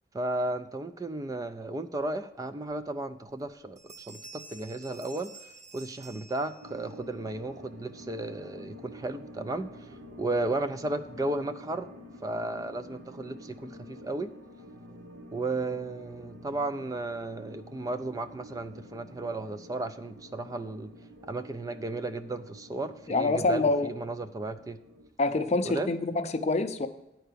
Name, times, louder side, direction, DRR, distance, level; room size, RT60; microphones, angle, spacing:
voice 1, 0.1-5.3 5.7-9.9 10.2-11.9 12.2-14.3 15.3-20.9 21.2-24.8 25.7-25.9, right 2 dB, 20° right, 10 dB, 0.3 m, -34 dB
Bell, 3.3-3.5 3.8-6.9, right 3 dB, 45° right, 1.4 m, -50 dB
sound 1, 6.6-25.1, equal, 80° right, 1.0 m, -49 dB
voice 2, 23.1-23.9 25.2-26.9, left 3 dB, 40° left, 9 dB, 0.5 m, -26 dB
9.1 x 4.5 x 6.6 m, 0.94 s
head